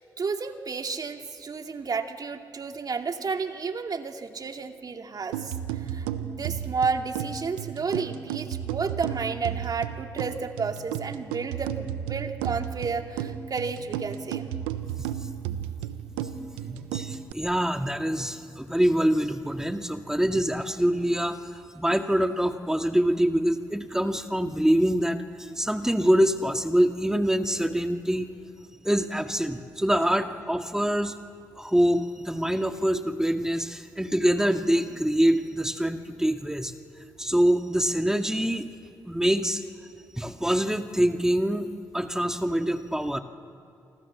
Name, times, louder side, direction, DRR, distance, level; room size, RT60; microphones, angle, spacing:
voice 1, 0.0-14.5, right 5 dB, 50° right, 5 dB, 2.4 m, -32 dB
sound 1, 5.3-17.3, right 10 dB, 90° right, 1.0 m, -33 dB
voice 2, 16.5-28.3 28.8-31.1 31.6-38.7 39.1-39.6 40.2-41.7 41.9-43.2, equal, 5° right, 6 dB, 2.1 m, -25 dB
29.0 x 25.5 x 7.4 m, 2.6 s
hypercardioid pair, 45°, 8 cm